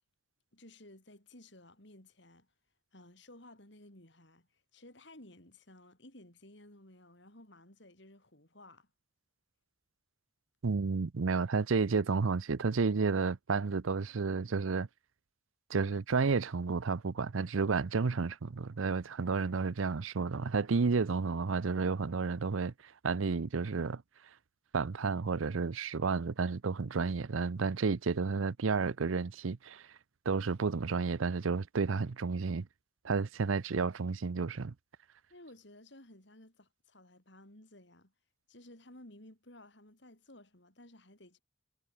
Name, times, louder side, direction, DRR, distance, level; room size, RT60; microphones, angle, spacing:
voice 1, 0.5-2.5 2.9-8.9 35.3-38.1 38.5-41.4, left 1 dB, 60° left, 5.3 m, -56 dB
voice 2, 10.6-14.9 15.7-24.0 24.7-29.9 30.3-32.7 33.0-34.7, right 4 dB, 85° right, 0.6 m, -31 dB
head